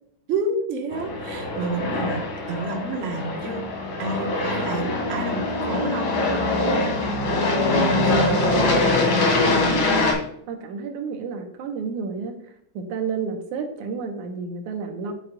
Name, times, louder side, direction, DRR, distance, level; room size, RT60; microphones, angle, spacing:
voice 1, 0.3-3.6 4.0-6.2 8.0-8.5, right 3 dB, 40° right, 1 dB, 1.1 m, -29 dB
Aircraft, 0.9-10.1, left 2 dB, 90° left, 3.8 m, -23 dB
voice 2, 7.8-9.0 9.4-10.2 10.5-12.4 12.7-15.1, right 5 dB, 85° right, 4 dB, 2.6 m, -31 dB
9.9 x 8.1 x 2.4 m, 0.69 s
omnidirectional pair, 3.4 m